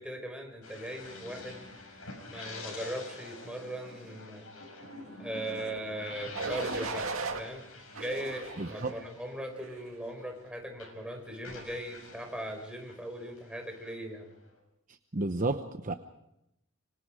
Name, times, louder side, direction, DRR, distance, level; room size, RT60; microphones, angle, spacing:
voice 1, 0.0-1.6 2.3-4.4 5.2-7.1 7.4-7.7 7.9-14.3, right 1 dB, 5° right, 3 dB, 4.6 m, -39 dB
sound 1, 0.6-10.5 10.7-14.6, left 2 dB, 85° left, 6.3 m, -47 dB
sound 2, 5.4-5.8 6.3-7.4 7.9-9.0 9.6-9.9, right 4 dB, 85° right, 2.2 m, -37 dB
voice 2, 8.6-8.9 15.1-15.9, right 2 dB, 40° right, 7 dB, 0.9 m, -31 dB
27.0 x 25.5 x 5.0 m, 0.84 s
head